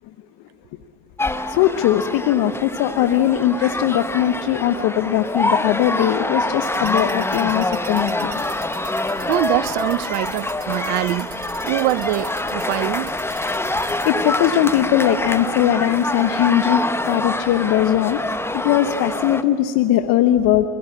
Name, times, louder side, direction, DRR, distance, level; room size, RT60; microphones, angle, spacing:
sound 1, 1.2-19.4, left 2 dB, 5° left, 0.8 m, -25 dB
voice 1, 1.5-8.4 13.7-18.2 18.6-20.7, left 11 dB, 65° left, 8 dB, 1.1 m, -20 dB
sound 2, 6.6-14.1, right 8 dB, 45° right, 2.1 m, -41 dB
voice 2, 8.8-11.3 11.6-13.2, right 17 dB, 70° right, 19 dB, 0.7 m, -24 dB
24.0 x 17.0 x 8.6 m, 2.9 s
hypercardioid pair, 75°, 40 cm